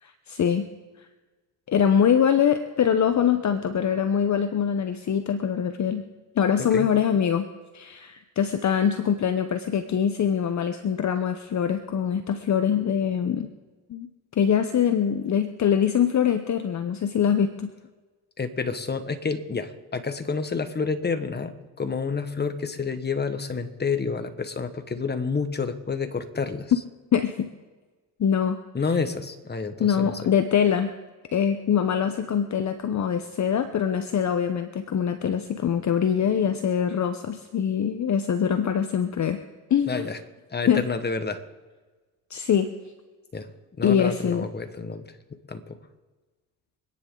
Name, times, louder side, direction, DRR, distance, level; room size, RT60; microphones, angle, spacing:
voice 1, 0.0-0.7 1.7-6.0 6.4-7.5 7.7-13.5 13.9-14.1 14.4-17.7 27.1-27.5 28.2-28.6 29.8-30.9 31.3-39.4 39.7-40.1 40.7-40.9 42.3-42.7 43.8-44.5, left 8 dB, 45° left, 9 dB, 0.9 m, -23 dB
voice 2, 6.6-6.9 18.4-26.7 28.7-30.1 39.9-40.2 40.5-41.4 43.3-43.5 43.8-45.1 45.5-45.8, left 5 dB, 25° left, 9 dB, 1.5 m, -29 dB
25.5 x 10.0 x 3.9 m, 1.3 s
supercardioid pair, 80°, 40 cm